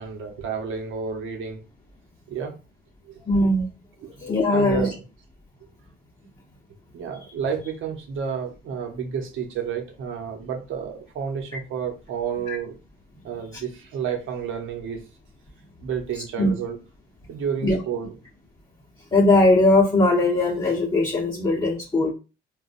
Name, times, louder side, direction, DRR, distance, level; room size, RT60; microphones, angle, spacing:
voice 1, 0.0-1.6 2.3-2.5 3.0-3.2 4.0-4.1 4.5-5.0 6.9-12.8 13.2-15.0 15.8-16.8 17.3-18.1, right 7 dB, 85° right, 3 dB, 0.9 m, -30 dB
voice 2, 3.3-3.7 4.2-4.9 12.5-12.6 13.5-13.6 16.4-16.5 17.6-17.8 19.1-22.1, left 2 dB, 20° left, -4 dB, 1.0 m, -19 dB
3.9 x 2.4 x 2.5 m, 0.31 s
cardioid pair, 90°, 20 cm